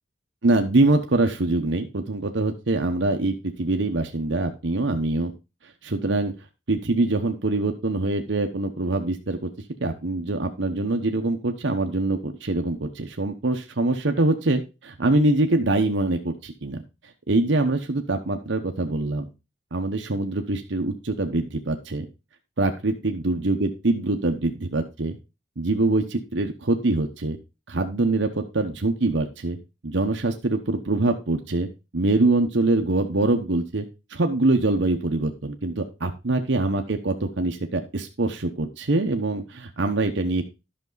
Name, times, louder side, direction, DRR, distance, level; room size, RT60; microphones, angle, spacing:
voice 1, 0.4-5.3 5.8-6.3 6.7-9.5 9.8-16.8 17.3-19.3 19.7-22.1 22.6-25.1 25.6-27.4 27.7-29.6 29.8-31.7 31.9-33.9 34.1-40.4, right 2 dB, 65° right, 4 dB, 1.0 m, -24 dB
11.0 x 6.2 x 3.9 m, 0.27 s
head